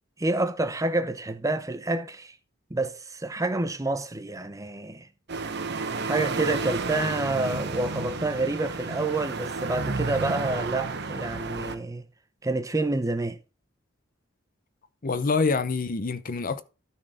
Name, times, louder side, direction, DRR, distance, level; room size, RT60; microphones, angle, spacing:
voice 1, 0.2-2.3 2.7-5.1 6.0-12.0 12.4-13.4, right 2 dB, 15° right, 0.7 m, -28 dB
sound 1, 5.3-11.8, right 4 dB, 60° right, 1.0 m, -31 dB
voice 2, 15.0-16.6, left 4 dB, 45° left, 0.7 m, -26 dB
13.0 x 4.4 x 4.9 m
head